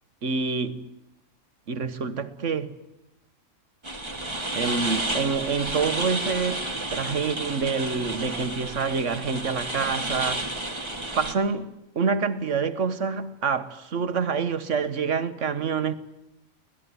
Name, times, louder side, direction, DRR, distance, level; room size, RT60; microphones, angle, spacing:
voice 1, 0.2-0.9 1.7-2.7 4.5-6.6 6.9-10.6 11.2-16.0, right 5 dB, 75° right, 1.6 m, -27 dB
sound 1, 3.8-11.3, right 2 dB, 20° right, 2.1 m, -31 dB
25.0 x 19.0 x 9.7 m
omnidirectional pair, 1.3 m